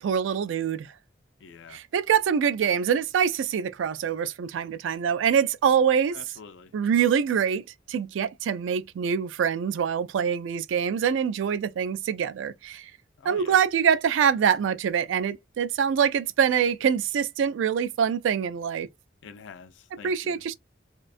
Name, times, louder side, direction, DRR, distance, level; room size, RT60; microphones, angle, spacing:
voice 1, 0.0-0.9 1.7-6.2 6.7-7.6 7.9-12.9 13.2-18.9 20.0-20.5, right 7 dB, 90° right, 0.3 m, -24 dB
voice 2, 1.4-1.8 6.1-6.7 13.2-13.6 19.2-20.4, left 6 dB, 75° left, 0.4 m, -46 dB
2.4 x 2.2 x 2.4 m
head